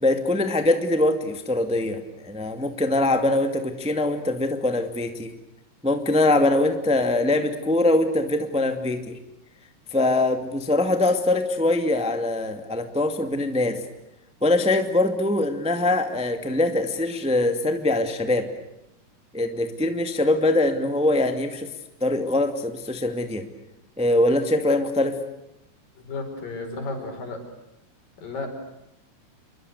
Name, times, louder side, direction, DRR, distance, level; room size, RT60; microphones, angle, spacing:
voice 1, 0.0-5.3 5.8-9.2 9.9-13.8 14.4-18.5 19.3-21.7 22.0-23.4 24.0-25.2, left 2 dB, ahead, 6 dB, 1.6 m, -23 dB
voice 2, 26.0-27.4 28.2-28.5, left 3 dB, 80° left, 5 dB, 6.9 m, -33 dB
28.5 x 23.5 x 8.2 m, 0.89 s
omnidirectional pair, 3.9 m